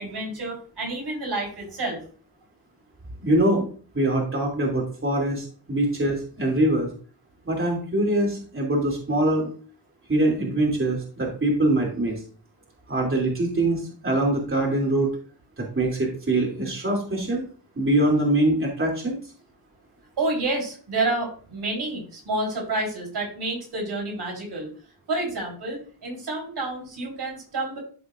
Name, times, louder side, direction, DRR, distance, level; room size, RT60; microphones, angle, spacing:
voice 1, 0.0-2.0 20.2-24.7 25.1-27.8, right 2 dB, 85° right, 0 dB, 3.8 m, -29 dB
voice 2, 3.2-6.9 7.4-9.5 10.1-12.2 12.9-15.1 15.6-17.4 17.7-19.2, right 1 dB, 30° right, -1 dB, 2.9 m, -23 dB
13.0 x 5.1 x 2.5 m, 0.41 s
wide cardioid pair, 85°, 40 cm